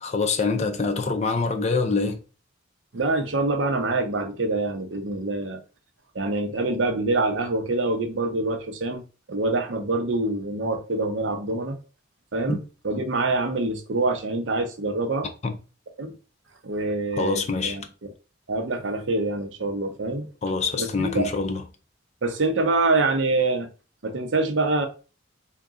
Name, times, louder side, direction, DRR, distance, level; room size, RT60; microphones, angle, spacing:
voice 1, 0.0-2.2 12.5-12.6 15.4-15.5 17.2-17.8 20.4-21.6, left 4 dB, 35° left, 0.4 m, -25 dB
voice 2, 2.9-5.6 6.1-9.0 9.3-11.8 12.3-12.6 12.8-15.3 16.0-16.2 16.6-17.8 18.5-20.3 20.8-21.3 22.2-23.7 24.0-24.9, right 2 dB, 70° right, 0.7 m, -25 dB
3.9 x 2.2 x 3.6 m
head